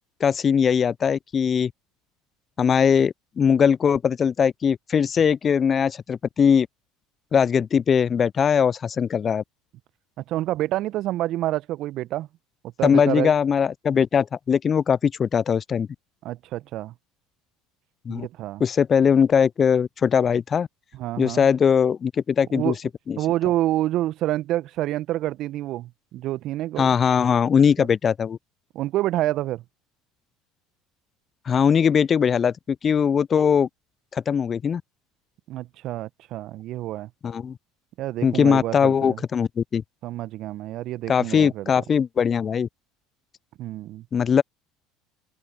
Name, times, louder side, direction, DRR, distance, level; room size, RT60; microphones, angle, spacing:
voice 1, 0.2-1.7 2.6-6.7 7.3-9.4 12.8-15.9 18.1-18.3 18.6-20.7 21.2-22.7 23.1-23.2 26.8-28.4 31.5-33.7 34.1-34.8 37.2-37.5 38.2-39.8 41.1-42.7 44.1-44.4, left 7 dB, 35° left, 0.5 m, -20 dB
voice 2, 10.2-12.3 12.8-13.3 16.2-16.9 18.1-18.6 20.9-21.5 22.5-22.8 23.2-26.9 27.8-27.9 28.7-29.6 35.5-37.1 38.0-39.2 40.0-41.7 43.6-44.0, right 14 dB, 55° right, 1.2 m, -28 dB
open air
hypercardioid pair, 65°, 0 cm